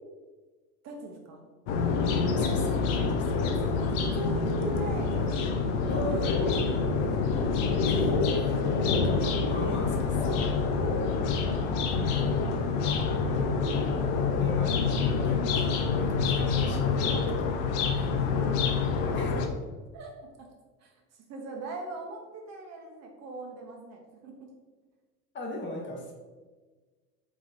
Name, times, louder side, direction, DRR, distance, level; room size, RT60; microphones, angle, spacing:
voice 1, 0.8-1.5 3.4-5.4 5.9-7.1 10.8-11.1 12.7-13.6 18.1-18.2 19.9-20.5 20.8-24.4, right 3 dB, 35° right, 1 dB, 0.8 m, -40 dB
sound 1, 1.7-19.5, left 5 dB, 50° left, 0.7 m, -27 dB
voice 2, 2.1-3.7 5.9-7.0 7.9-10.3 12.0-12.4 13.2-13.8 14.3-17.6 19.1-19.5 25.3-26.1, left 1 dB, 25° left, 0 dB, 0.9 m, -38 dB
4.0 x 3.0 x 3.7 m, 1.3 s
hypercardioid pair, 85°, 46 cm